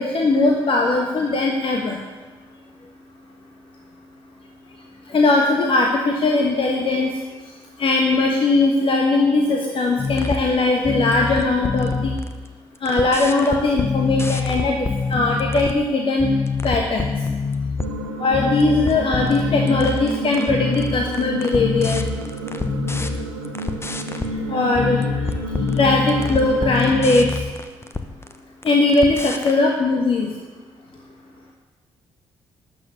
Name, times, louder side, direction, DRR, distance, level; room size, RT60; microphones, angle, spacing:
voice 1, 0.0-2.0 5.1-7.1 7.8-12.1 12.8-16.3 16.6-17.1 18.2-22.0 24.5-25.0 25.8-27.3 28.6-30.3, left 3 dB, 45° left, 0 dB, 1.5 m, -19 dB
sound 1, 10.0-10.5 10.8-12.5 12.8-15.8 16.2-18.0 18.3-24.3 24.7-28.4 28.6-29.5, left 4 dB, 20° left, 1.1 m, -25 dB
sound 2, 17.8-26.7, right 1 dB, 80° right, 0.8 m, -30 dB
12.5 x 6.6 x 8.3 m, 1.3 s
figure-of-eight pair, 40°, 13 cm